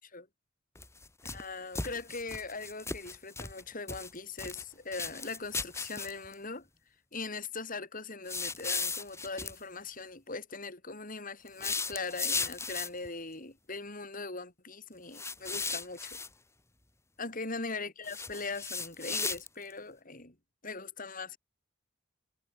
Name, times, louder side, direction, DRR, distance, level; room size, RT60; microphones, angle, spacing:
sound 1, 0.8-1.4 1.7-3.6 3.9-4.6 4.9-6.3 8.3-9.6 11.5-13.1 15.1-16.3 18.0-19.7, left 4 dB, 15° left, 2.4 m, -36 dB
voice 1, 1.3-6.7 7.1-16.2 17.2-20.3 20.6-21.4, left 3 dB, 40° left, 4.9 m, -40 dB
head